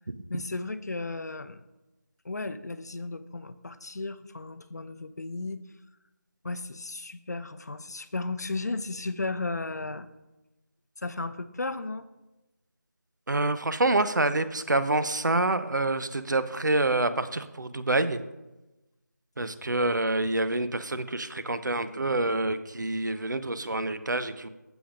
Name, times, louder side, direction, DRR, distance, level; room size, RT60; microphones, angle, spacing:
voice 1, 0.3-1.6 2.2-5.6 6.4-10.1 11.0-12.0, left 3 dB, 60° left, 12 dB, 0.6 m, -34 dB
voice 2, 13.3-18.2 19.4-24.5, right 2 dB, 75° right, 12 dB, 0.8 m, -27 dB
14.5 x 7.2 x 2.5 m, 1.0 s
figure-of-eight pair, 170°, 10 cm